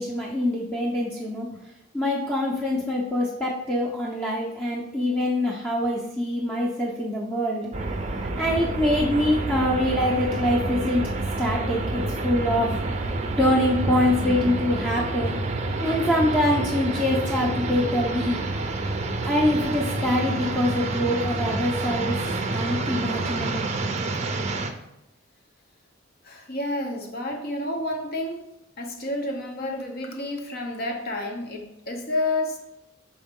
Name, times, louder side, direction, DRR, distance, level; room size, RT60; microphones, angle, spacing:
voice 1, 0.0-1.5 1.9-7.7 8.4-11.0 11.4-12.9 13.4-15.3 15.8-18.4 19.2-22.2 22.5-23.7, left 1 dB, 10° left, -5 dB, 0.7 m, -24 dB
sound 1, 7.7-24.7, right 2 dB, 35° right, 0.5 m, -28 dB
voice 2, 26.2-28.5 28.8-32.6, left 1 dB, 50° left, 3 dB, 0.9 m, -30 dB
6.2 x 4.7 x 3.7 m, 0.88 s
head